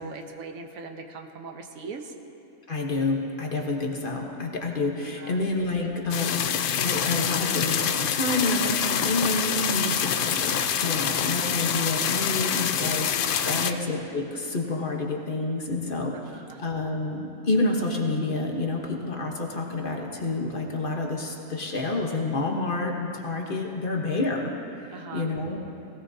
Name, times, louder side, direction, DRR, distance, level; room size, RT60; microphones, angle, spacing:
voice 1, 0.0-2.1 5.2-5.4 9.0-9.4 13.4-13.8 16.1-16.6 24.9-25.3, right 4 dB, 85° right, 5 dB, 1.4 m, -40 dB
voice 2, 2.7-10.5 10.8-25.6, left 2 dB, 40° left, 0 dB, 1.3 m, -29 dB
sound 1, 6.1-13.7, left 8 dB, 60° left, 0.6 m, -26 dB
18.0 x 17.0 x 2.8 m, 2.8 s
omnidirectional pair, 1.4 m